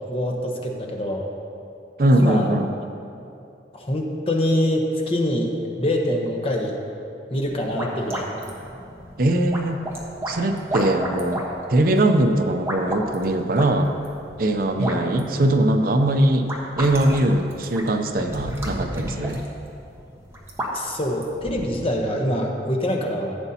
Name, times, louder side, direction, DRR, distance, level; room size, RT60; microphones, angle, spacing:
voice 1, 0.1-1.3 2.1-2.5 3.7-5.5 5.8-6.8 7.3-8.3 14.8-15.0 20.7-23.4, left 1 dB, 30° left, 1 dB, 0.9 m, -24 dB
voice 2, 2.0-2.7 9.2-9.8 10.3-11.4 11.7-13.9 14.4-16.5 16.8-19.4, right 1 dB, 50° right, 6 dB, 0.5 m, -21 dB
sound 1, 7.3-21.9, right 1 dB, 15° right, 1.1 m, -33 dB
15.0 x 8.1 x 2.8 m, 2.6 s
head